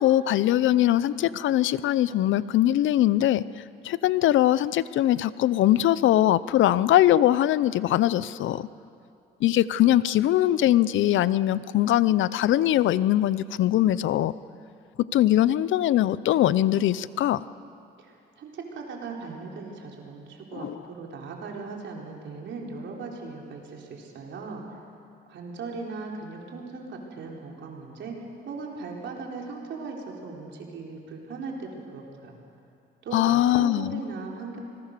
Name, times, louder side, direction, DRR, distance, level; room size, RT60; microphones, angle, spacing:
voice 1, 0.0-3.4 3.8-8.6 9.4-14.3 15.1-17.4 20.6-20.8 33.1-34.0, left 13 dB, 75° left, 18 dB, 0.7 m, -21 dB
voice 2, 18.0-24.8 25.3-28.2 28.4-32.3 33.0-34.6, right 4 dB, 70° right, 0 dB, 4.1 m, -38 dB
25.5 x 21.0 x 6.7 m, 2.6 s
cardioid pair, 90°, 20 cm